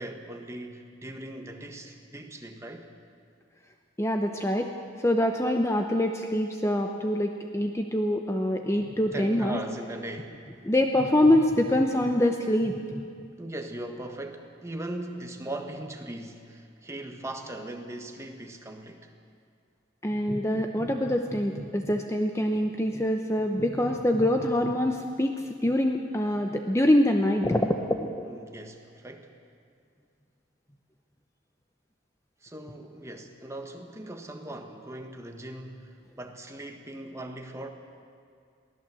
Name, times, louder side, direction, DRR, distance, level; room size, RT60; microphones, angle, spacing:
voice 1, 0.0-2.9 7.5-7.6 9.1-10.7 13.4-19.1 28.2-29.3 32.4-37.7, right 1 dB, 15° right, 4 dB, 1.4 m, -39 dB
voice 2, 4.0-4.7 5.0-9.6 10.6-13.3 20.0-25.3 25.6-28.3, left 1 dB, 15° left, 4 dB, 0.7 m, -25 dB
22.5 x 16.0 x 7.6 m, 2.3 s
head